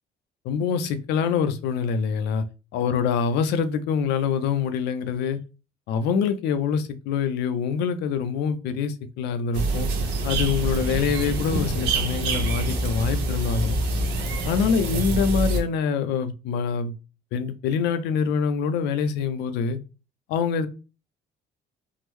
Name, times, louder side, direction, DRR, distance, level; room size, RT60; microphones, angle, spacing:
voice 1, 0.4-2.4 2.7-5.4 5.9-9.9 10.2-13.8 14.4-16.9 17.3-19.8 20.3-20.7, left 6 dB, 85° left, 0.5 m, -25 dB
sound 1, 9.5-15.6, right 2 dB, 85° right, 0.8 m, -26 dB
3.6 x 2.0 x 3.0 m
cardioid pair, 110°, 17 cm